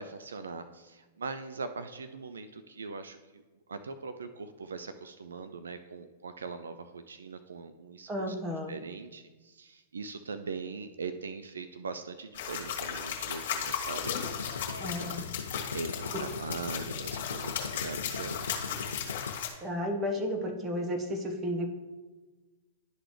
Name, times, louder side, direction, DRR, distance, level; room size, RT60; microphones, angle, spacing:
voice 1, 0.0-3.4 3.7-8.4 8.7-18.7, right 4 dB, 85° right, 10 dB, 0.4 m, -41 dB
voice 2, 8.1-8.7 14.8-15.3 19.6-21.7, equal, 25° right, 4 dB, 1.2 m, -33 dB
sound 1, 12.3-19.5, left 8 dB, 65° left, 1.4 m, -36 dB
sound 2, 14.0-19.4, left 5 dB, 85° left, 0.4 m, -40 dB
11.5 x 3.9 x 3.3 m, 1.2 s
hypercardioid pair, 110°, 0 cm